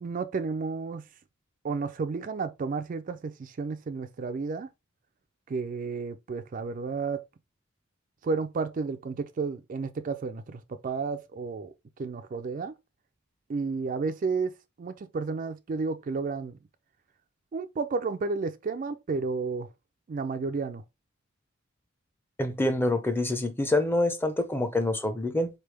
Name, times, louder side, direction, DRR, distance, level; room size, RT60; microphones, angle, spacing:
voice 1, 0.0-1.0 1.6-4.7 5.5-7.2 8.2-12.7 13.5-14.5 14.8-16.6 17.5-19.7 20.1-20.8, right 4 dB, 40° right, 0.3 m, -32 dB
voice 2, 22.4-25.5, left 1 dB, 10° left, 0.6 m, -26 dB
4.3 x 3.3 x 3.2 m
head